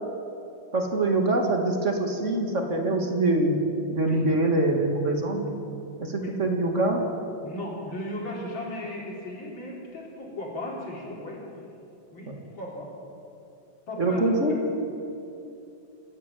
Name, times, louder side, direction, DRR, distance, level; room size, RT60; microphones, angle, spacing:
voice 1, 0.7-3.6 3.9-5.5 6.0-7.1 12.3-12.4 14.0-14.6, right 2 dB, 40° right, 3 dB, 2.3 m, -24 dB
voice 2, 7.4-11.4 12.1-12.9 13.9-14.2 14.5-14.6, left 1 dB, 75° left, -3 dB, 4.8 m, -36 dB
27.0 x 10.5 x 9.4 m, 2.7 s
omnidirectional pair, 2.1 m